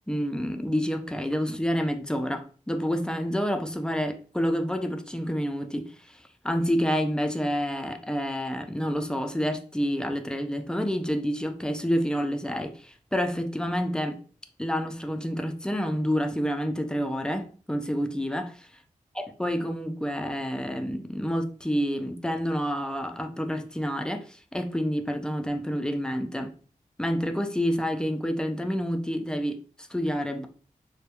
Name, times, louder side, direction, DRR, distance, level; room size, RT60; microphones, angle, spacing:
voice 1, 0.1-14.2 14.6-18.7 19.2-26.5 27.0-30.5, equal, 5° left, 6 dB, 0.3 m, -28 dB
2.2 x 2.1 x 2.8 m, 0.41 s
cardioid pair, 65°, 14 cm